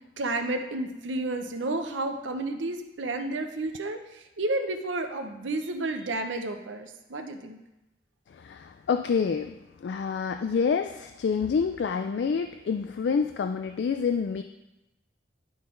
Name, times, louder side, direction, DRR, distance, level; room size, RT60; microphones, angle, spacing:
voice 1, 0.2-7.6, right 2 dB, 90° right, 6 dB, 0.7 m, -31 dB
voice 2, 8.3-14.4, left 6 dB, 70° left, 7 dB, 0.3 m, -28 dB
11.0 x 3.9 x 3.8 m, 0.98 s
head